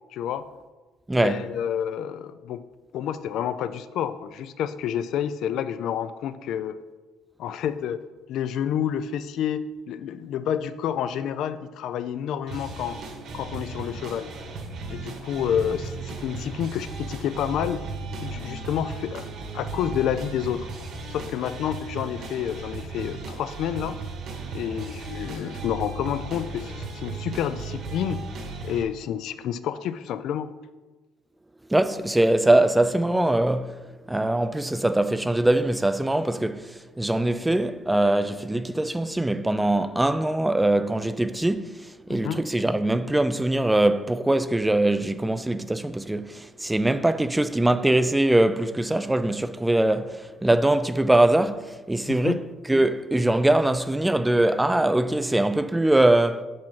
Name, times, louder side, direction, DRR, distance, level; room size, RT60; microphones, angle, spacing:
voice 1, 0.1-0.5 1.1-2.6 2.9-6.8 7.4-8.0 8.3-13.0 13.3-14.3 14.9-17.8 18.2-19.3 19.5-20.7 21.1-24.0 24.5-28.3 28.6-30.5 42.1-42.4 52.1-52.4, left 9 dB, 65° left, 0.3 m, -29 dB
voice 2, 1.1-1.4 31.7-33.7 34.1-52.4 52.7-56.4, right 1 dB, 10° right, 0.3 m, -22 dB
sound 1, 12.5-28.8, right 3 dB, 60° right, 1.4 m, -36 dB
5.8 x 5.2 x 5.4 m
supercardioid pair, 90°, 0 cm